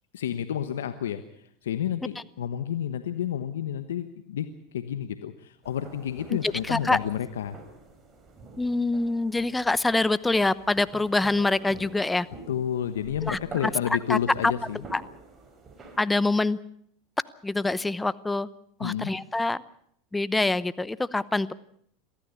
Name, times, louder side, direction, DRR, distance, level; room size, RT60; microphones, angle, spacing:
voice 1, 0.1-7.6 12.5-14.8 18.8-19.1, left 9 dB, 90° left, 10 dB, 1.2 m, -30 dB
sound 1, 5.6-16.0, right 3 dB, 25° right, 5.4 m, -47 dB
voice 2, 6.7-7.0 8.6-12.3 13.2-13.4 14.1-14.2 14.9-15.0 16.0-16.6 17.4-18.5 18.8-19.6 20.1-21.5, left 2 dB, 10° left, 18 dB, 0.8 m, -25 dB
23.5 x 15.0 x 8.3 m, 0.67 s
hypercardioid pair, 100°, 0 cm